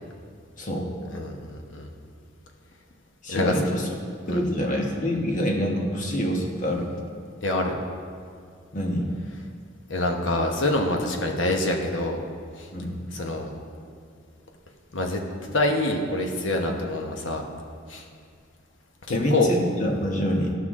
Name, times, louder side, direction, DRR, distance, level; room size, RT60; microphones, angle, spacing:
voice 1, 1.1-1.9 3.3-3.5 4.3-4.4 7.4-7.8 9.9-12.2 13.1-13.5 14.9-17.4 17.9-18.0 19.1-19.5, left 2 dB, 75° left, 2 dB, 1.1 m, -26 dB
voice 2, 3.2-3.9 4.3-6.9 8.7-9.1 12.7-13.0 19.1-20.5, equal, 40° left, 0 dB, 1.2 m, -26 dB
14.5 x 5.7 x 3.7 m, 2.1 s
head